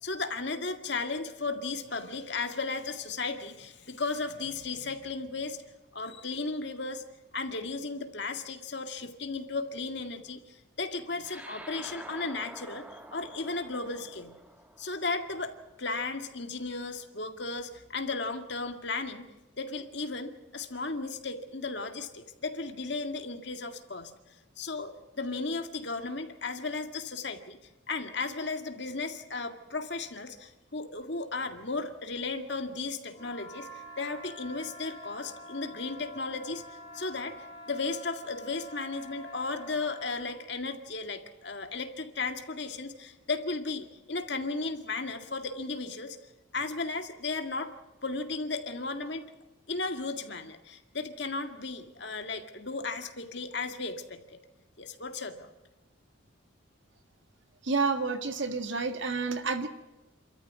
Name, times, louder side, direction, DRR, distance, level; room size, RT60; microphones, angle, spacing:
voice 1, 0.0-5.6 5.9-7.0 7.3-12.8 13.1-14.4 14.8-15.5 15.8-19.3 19.6-24.1 24.6-27.6 27.9-37.4 37.7-46.2 46.5-47.7 48.0-49.3 49.7-54.4 54.8-55.5, left 3 dB, 55° left, 6 dB, 2.0 m, -35 dB
sound 1, 11.2-16.0, right 1 dB, 5° right, 1.3 m, -48 dB
sound 2, 33.1-40.4, equal, 20° left, 4.4 m, -47 dB
voice 2, 57.6-59.7, right 4 dB, 65° right, 7 dB, 1.9 m, -29 dB
28.5 x 13.5 x 9.4 m, 1.0 s
head